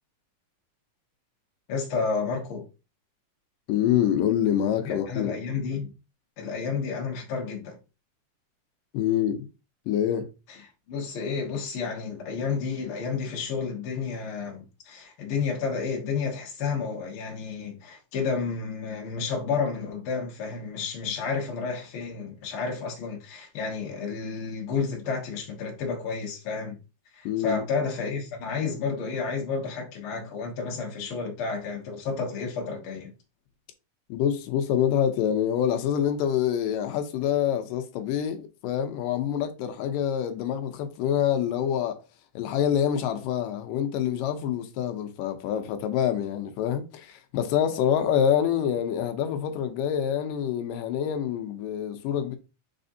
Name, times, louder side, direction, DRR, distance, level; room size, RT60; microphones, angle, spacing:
voice 1, 1.7-2.6 4.8-5.9 6.4-7.8 10.5-10.6 10.9-26.8 27.1-33.1, left 5 dB, 60° left, 1.5 m, -31 dB
voice 2, 3.7-5.3 8.9-9.5 9.9-10.3 27.3-27.6 34.1-42.0 42.4-52.4, left 9 dB, 85° left, 2.3 m, -26 dB
4.7 x 4.2 x 2.6 m
omnidirectional pair, 3.8 m